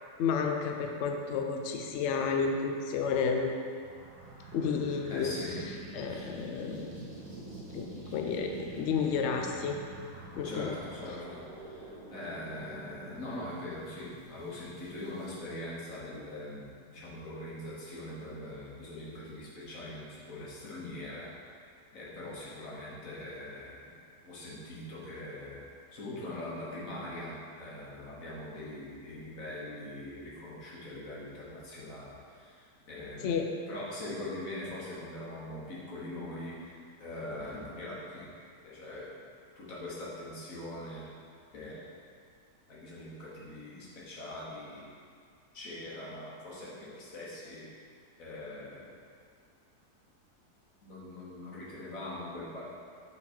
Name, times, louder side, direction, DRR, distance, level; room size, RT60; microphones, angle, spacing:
voice 1, 0.2-3.5 4.5-5.3 5.9-7.0 7.7-9.8 10.3-10.7 33.2-33.5, left 5 dB, 85° left, 3 dB, 0.6 m, -31 dB
sound 1, 3.7-15.4, right 2 dB, 25° right, 1.7 m, -47 dB
voice 2, 5.1-5.6 6.0-6.4 10.4-21.3 21.9-23.9 24.2-33.4 33.7-38.3 38.6-39.2 39.6-41.1 41.5-41.9 42.7-45.0 45.5-47.7 48.2-48.8 50.8-52.6, left 1 dB, 55° left, -6 dB, 1.6 m, -42 dB
6.1 x 4.1 x 4.3 m, 2.2 s
omnidirectional pair, 1.8 m